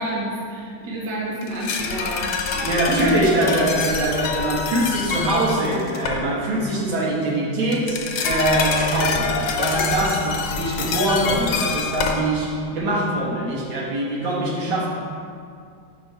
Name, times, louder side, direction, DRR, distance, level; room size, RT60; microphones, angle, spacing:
voice 1, 0.0-3.1, right 1 dB, 65° right, -4 dB, 1.6 m, -29 dB
sound 1, 1.4-6.3 7.7-12.7 12.9-13.0, left 5 dB, 70° left, 1.2 m, -26 dB
voice 2, 2.5-14.9, right 1 dB, 80° right, -5 dB, 2.0 m, -23 dB
6.2 x 5.3 x 4.6 m, 2.3 s
omnidirectional pair, 2.1 m